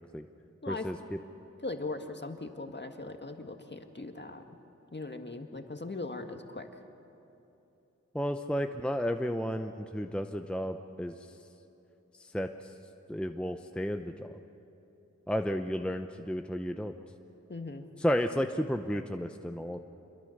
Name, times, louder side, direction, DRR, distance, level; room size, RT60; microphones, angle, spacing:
voice 1, 0.7-1.0 8.1-11.2 12.2-12.7 13.1-14.4 15.3-16.9 18.0-19.8, equal, 5° left, 6 dB, 0.7 m, -32 dB
voice 2, 1.6-4.6 4.9-6.8 17.5-17.9, left 2 dB, 35° left, 5 dB, 1.8 m, -39 dB
27.0 x 22.5 x 6.6 m, 2.9 s
wide cardioid pair, 70°, 30 cm